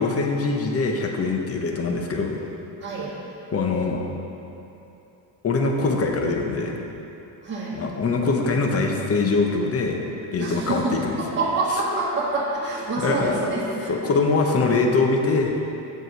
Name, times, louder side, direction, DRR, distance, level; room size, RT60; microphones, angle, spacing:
voice 1, 0.0-2.4 3.5-4.0 5.4-6.8 7.7-10.0 10.3-11.2 13.0-13.6 13.9-15.5, left 3 dB, 35° left, 1 dB, 0.9 m, -23 dB
voice 2, 2.8-3.1 7.4-7.9 10.4-14.0, right 2 dB, 25° right, -9 dB, 1.8 m, -27 dB
7.7 x 4.9 x 6.1 m, 3.0 s
cardioid pair, 115°, 44 cm